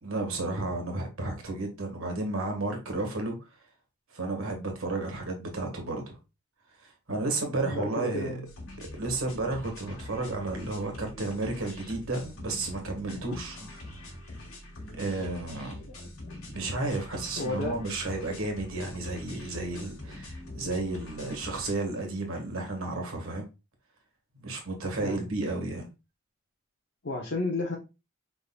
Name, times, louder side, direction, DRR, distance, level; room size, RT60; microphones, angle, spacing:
voice 1, 0.0-3.3 4.1-6.2 6.8-8.4 8.8-14.0 15.0-15.9 16.5-23.4 24.3-25.9, right 2 dB, 70° right, 1.5 m, -32 dB
voice 2, 7.6-8.5 15.9-16.0 17.4-17.8 18.0-18.2 25.0-25.3 27.0-27.8, left 2 dB, 55° left, 0.8 m, -32 dB
sound 1, 8.5-21.7, left 1 dB, 75° left, 1.4 m, -44 dB
5.2 x 3.8 x 2.3 m
head